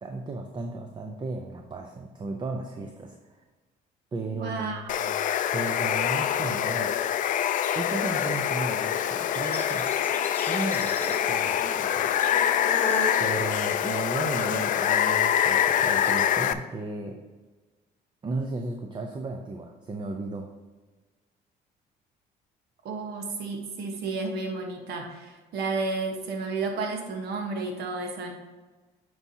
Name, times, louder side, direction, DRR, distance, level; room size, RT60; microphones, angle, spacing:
voice 1, 0.0-3.4 4.1-5.1 5.5-6.9 7.8-9.9 10.5-12.1 13.2-17.2 18.2-20.5, right 3 dB, 25° right, 4 dB, 0.6 m, -35 dB
voice 2, 4.3-5.0 22.8-28.3, right 3 dB, 75° right, 3 dB, 1.2 m, -32 dB
Water, 4.9-16.5, left 10 dB, 50° left, 0.4 m, -25 dB
Insect, 8.8-16.4, left 1 dB, 10° left, 0.8 m, -39 dB
9.6 x 4.7 x 2.8 m, 1.3 s
cardioid pair, 110°, 17 cm